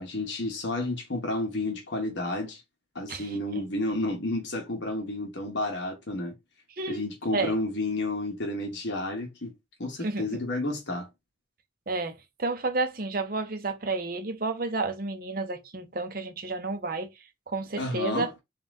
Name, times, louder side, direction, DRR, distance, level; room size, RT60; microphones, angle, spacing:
voice 1, 0.0-2.6 2.9-6.3 6.9-9.5 9.8-11.1 17.8-18.3, left 2 dB, 65° left, 1.1 m, -31 dB
voice 2, 3.1-3.6 6.8-7.0 7.3-7.5 10.0-10.3 11.9-17.1 17.5-18.3, right 3 dB, 45° right, 0.7 m, -31 dB
4.1 x 2.4 x 3.6 m
head